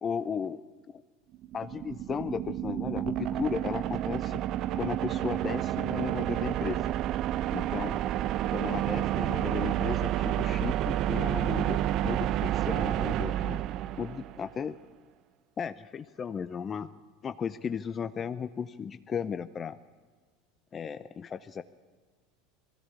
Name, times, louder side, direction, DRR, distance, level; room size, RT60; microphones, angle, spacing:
voice 1, 0.0-0.6 1.5-4.4 4.8-6.9 7.5-8.0 8.5-13.6 14.0-14.7 15.6-16.9 17.2-19.8 20.7-21.6, left 6 dB, 30° left, 13 dB, 0.7 m, -35 dB
sound 1, 1.3-14.5, right 13 dB, 50° right, 0.5 m, -30 dB
20.0 x 16.0 x 8.3 m, 1.5 s
hypercardioid pair, 80°, 0 cm